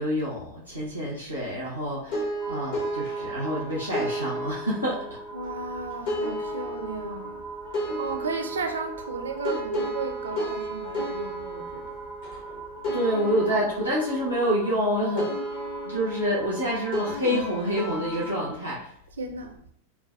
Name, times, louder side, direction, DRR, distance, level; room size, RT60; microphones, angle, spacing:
voice 1, 0.0-5.0 12.9-15.3 15.8-18.9, equal, 85° left, 0.8 m, -27 dB
sound 1, 2.1-18.5, equal, 50° left, 1.0 m, -33 dB
sound 2, 2.4-18.5, right 4 dB, 5° left, 0.5 m, -43 dB
voice 2, 5.3-7.4 7.8-12.0 19.1-19.6, right 4 dB, 70° right, 0.4 m, -34 dB
4.7 x 2.2 x 2.4 m
figure-of-eight pair, 90°, 0 cm